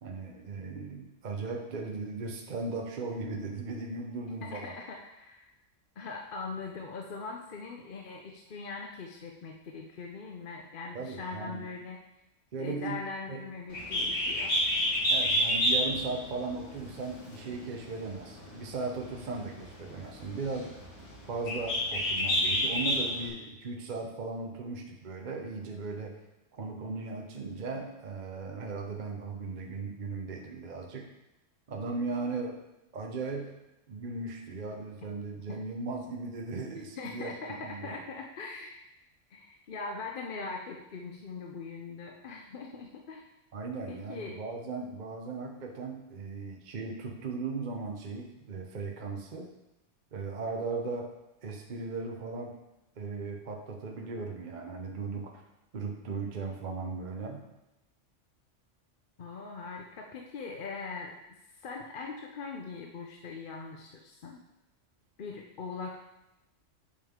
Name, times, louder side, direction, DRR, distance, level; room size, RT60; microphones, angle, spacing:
voice 1, 0.0-4.7 10.9-11.6 12.5-13.0 13.3-13.4 15.1-20.7 21.3-26.2 26.5-31.1 31.7-32.6 32.9-33.5 33.9-38.0 43.5-49.5 50.1-51.2 51.4-52.6 53.0-55.4 55.7-57.5, right 3 dB, 45° right, 2 dB, 0.8 m, -37 dB
voice 2, 4.5-5.5 6.0-12.0 12.6-14.6 37.0-38.8 39.3-43.2 43.9-44.4 59.2-64.4 65.2-66.0, left 4 dB, 50° left, 1 dB, 0.8 m, -41 dB
Bird, 13.7-23.3, equal, 75° left, 1.8 m, -30 dB
8.6 x 5.3 x 3.6 m, 0.94 s
omnidirectional pair, 1.3 m